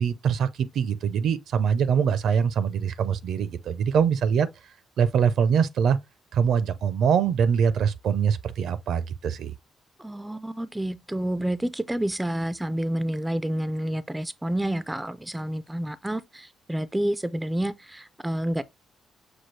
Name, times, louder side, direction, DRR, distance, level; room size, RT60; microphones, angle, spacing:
voice 1, 0.0-4.5 5.0-6.0 6.3-9.5, right 7 dB, 70° right, 0.5 m, -23 dB
voice 2, 10.0-18.6, right 1 dB, 10° right, 0.3 m, -29 dB
6.1 x 2.4 x 3.1 m
cardioid pair, 115°, 0 cm